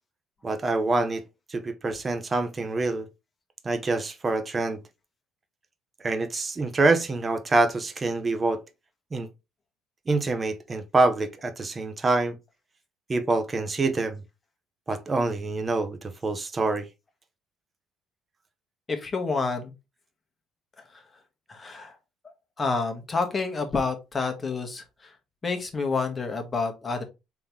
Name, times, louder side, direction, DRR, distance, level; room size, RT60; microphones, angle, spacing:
voice 1, 0.4-3.1 3.6-4.8 6.0-8.6 9.1-9.3 10.1-12.4 13.1-14.2 14.9-16.9, right 3 dB, 30° right, 0.8 m, -26 dB
voice 2, 18.9-19.7 20.9-21.0 21.5-22.0 22.6-25.1 25.4-27.0, left 4 dB, 25° left, 1.2 m, -29 dB
3.8 x 3.0 x 3.5 m
supercardioid pair, 85°, 0 cm